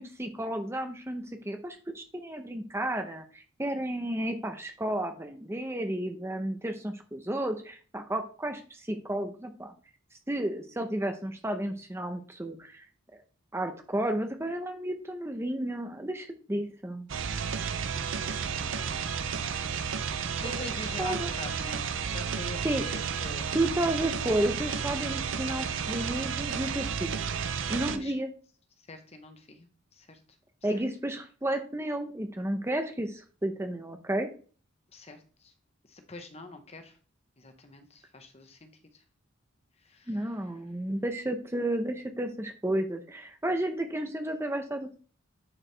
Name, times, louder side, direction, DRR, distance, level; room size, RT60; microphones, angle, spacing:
voice 1, 0.0-9.7 10.3-12.9 13.1-13.2 13.5-17.1 20.4-20.7 21.0-21.3 22.6-22.8 23.5-27.1 27.7-28.3 30.6-34.3 40.1-45.0, right 1 dB, 10° right, 6 dB, 0.7 m, -32 dB
sound 1, 17.1-28.0, right 6 dB, 65° right, 0.6 m, -32 dB
voice 2, 17.9-19.0 20.1-23.6 27.9-28.1 28.8-29.7 29.9-30.2 34.9-35.5 35.9-37.0 37.4-39.0 39.8-40.2, left 2 dB, 30° left, 7 dB, 0.9 m, -45 dB
9.9 x 4.8 x 3.3 m, 0.40 s
head